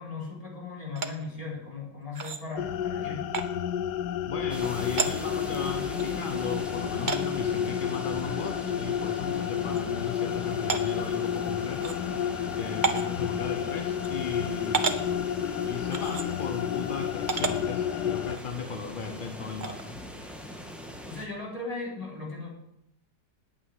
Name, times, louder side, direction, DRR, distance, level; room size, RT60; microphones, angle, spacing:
voice 1, 0.0-3.3 21.1-22.5, left 3 dB, 20° left, -3 dB, 4.1 m, -37 dB
sound 1, 0.9-1.1 2.1-2.4 3.3-3.5 4.6-4.7 5.0-5.1 6.0-6.1 7.1-7.2 8.4-8.5 8.9-9.0 9.7-9.8 10.7-10.8 11.8-12.0 12.8-13.1 14.0-14.1 14.7-15.0 15.9-16.3 17.3-17.5 18.3-18.4 19.6-19.8, right 5 dB, 35° right, 0.8 m, -29 dB
sound 2, 2.6-18.4, left 9 dB, 75° left, 1.2 m, -31 dB
voice 2, 4.3-12.3 12.6-15.1 15.6-20.0, left 5 dB, 40° left, 6 dB, 0.8 m, -37 dB
sound 3, 4.5-21.3, equal, ahead, 1.5 m, -41 dB
9.0 x 8.8 x 9.5 m, 0.83 s
omnidirectional pair, 1.8 m